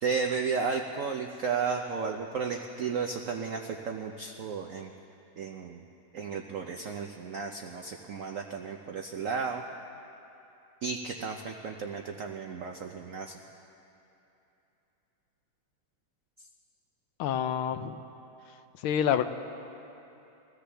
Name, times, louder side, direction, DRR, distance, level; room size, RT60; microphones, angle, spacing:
voice 1, 0.0-4.9 5.4-5.8 6.1-9.6 10.8-13.3, right 5 dB, 90° right, 3 dB, 0.7 m, -33 dB
voice 2, 17.2-18.0 18.8-19.3, left 9 dB, 90° left, 10 dB, 1.5 m, -27 dB
24.0 x 15.5 x 3.4 m, 2.9 s
omnidirectional pair, 2.2 m